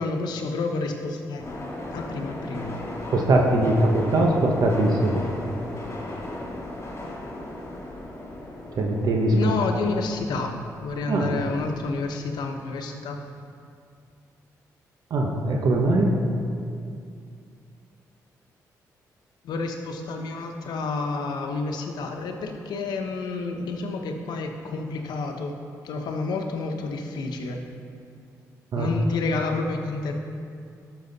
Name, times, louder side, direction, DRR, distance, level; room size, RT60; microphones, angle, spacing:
voice 1, 0.0-1.5 1.9-2.8 9.3-13.2 19.4-25.6 25.8-27.6 28.7-30.1, left 3 dB, 80° left, 4 dB, 0.9 m, -29 dB
sound 1, 1.4-12.0, left 1 dB, 45° left, 2.5 m, -37 dB
voice 2, 3.1-5.2 8.8-9.5 11.1-11.3 15.1-16.1 28.7-28.9, right 2 dB, 65° right, 0 dB, 1.0 m, -21 dB
12.0 x 6.3 x 4.0 m, 2.4 s
cardioid pair, 70°, 7 cm